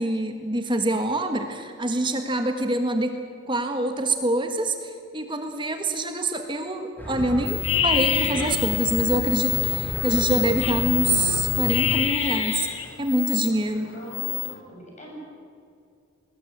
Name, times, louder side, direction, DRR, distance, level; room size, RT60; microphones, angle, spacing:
voice 1, 0.0-3.2 3.5-12.7 13.0-13.9, right 1 dB, 25° right, 6 dB, 1.5 m, -25 dB
sound 1, 7.0-12.0, equal, 10° left, 4.1 m, -32 dB
sound 2, 7.5-13.5 13.9-14.5, left 10 dB, 70° left, 2.1 m, -26 dB
voice 2, 13.8-15.2, equal, 35° left, -2 dB, 7.5 m, -41 dB
20.5 x 19.5 x 8.7 m, 2.4 s
head